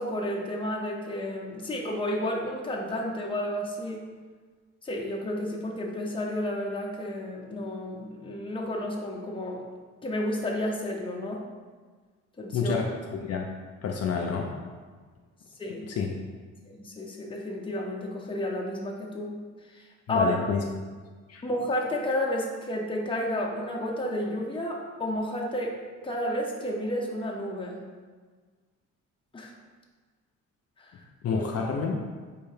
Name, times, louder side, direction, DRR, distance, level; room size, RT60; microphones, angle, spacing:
voice 1, 0.0-4.0 4.8-9.6 10.0-11.4 12.4-12.8 15.6-15.9 16.7-19.4 19.8-20.4 21.4-25.7 26.0-27.8 29.3-29.5 30.8-30.9 31.3-31.4, left 1 dB, 15° left, -2 dB, 0.7 m, -31 dB
voice 2, 12.5-12.9 13.3-13.5 13.8-14.5 15.9-16.1 20.1-20.6 21.3-21.4 31.2-32.0, left 5 dB, 55° left, 0 dB, 0.5 m, -28 dB
4.6 x 2.7 x 3.3 m, 1.5 s
cardioid pair, 90°, 30 cm